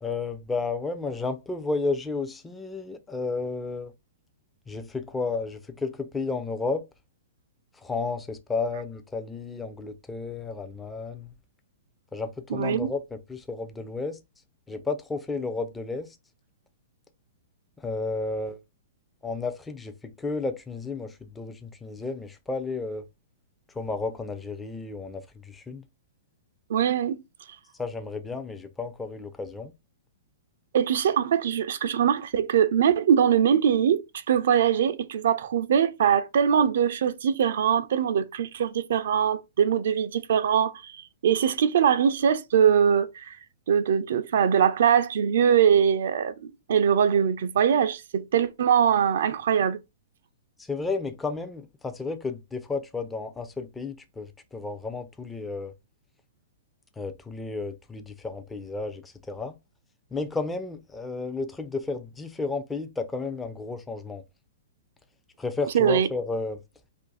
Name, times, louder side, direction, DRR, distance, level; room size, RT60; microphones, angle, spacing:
voice 1, 0.0-3.9 4.7-6.8 7.8-11.3 12.1-13.0 13.3-14.2 14.7-16.2 17.8-18.6 19.2-23.0 23.7-25.8 27.8-29.7 50.6-55.7 57.0-59.5 60.1-64.2 65.4-66.6, left 3 dB, 10° left, 0.4 m, -32 dB
voice 2, 12.5-12.9 26.7-27.2 30.7-43.4 43.7-49.8 65.7-66.1, right 8 dB, 70° right, 0.3 m, -22 dB
2.5 x 2.5 x 3.9 m
hypercardioid pair, 130°, 0 cm